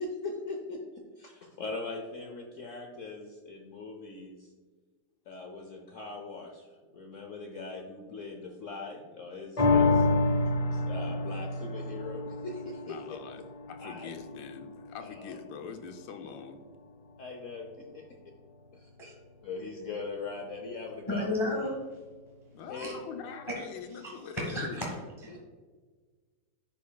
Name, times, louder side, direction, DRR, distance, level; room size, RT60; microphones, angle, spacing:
voice 1, 0.0-4.5 5.3-6.7 6.9-10.1 10.7-13.0 13.8-14.1 15.0-15.4 17.2-18.1 18.7-18.9 19.4-21.3 22.7-23.0 23.2-23.3 25.3-25.4, left 3 dB, 65° left, 3 dB, 0.8 m, -40 dB
sound 1, 9.6-16.2 16.7-16.8, left 3 dB, 50° left, 0.4 m, -29 dB
voice 2, 12.9-13.4 13.7-16.6 22.5-24.9, left 6 dB, 80° left, 6 dB, 1.4 m, -43 dB
voice 3, 21.1-21.8 22.8-22.9 23.5-23.7 24.0-24.9 25.2-25.4, left 1 dB, 20° left, -3 dB, 1.0 m, -33 dB
10.5 x 5.1 x 2.2 m, 1.4 s
omnidirectional pair, 2.0 m